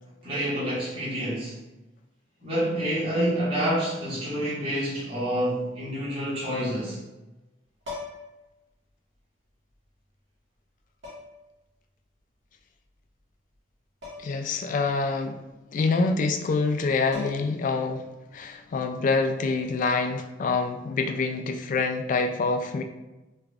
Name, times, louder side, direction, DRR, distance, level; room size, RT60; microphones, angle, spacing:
voice 1, 0.2-1.6 2.4-7.0, equal, 30° right, -10 dB, 1.4 m, -28 dB
sound 1, 7.8-8.4 9.7-9.8 11.0-11.5 14.0-14.4 14.8-14.9 16.7-16.8 17.1-17.7 19.7-19.9, left 3 dB, 80° right, 1.5 m, -40 dB
voice 2, 14.2-15.4 15.7-18.1 18.3-22.8, left 4 dB, 45° left, 6 dB, 0.3 m, -26 dB
3.4 x 3.3 x 2.4 m, 1.0 s
head